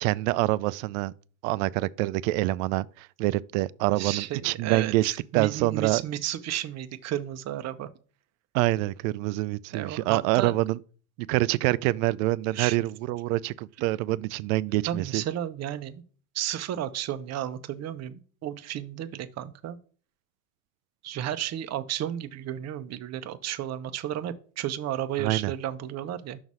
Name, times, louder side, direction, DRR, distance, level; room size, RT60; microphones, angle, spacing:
voice 1, 0.0-1.1 1.4-6.0 8.5-10.8 11.3-15.2 25.2-25.5, right 18 dB, 70° right, 0.5 m, -26 dB
voice 2, 4.0-7.9 9.7-10.5 12.5-12.8 14.9-16.0 16.3-19.8 21.0-26.4, right 11 dB, 40° right, 0.7 m, -33 dB
6.1 x 4.0 x 6.2 m
hypercardioid pair, 90°, 42 cm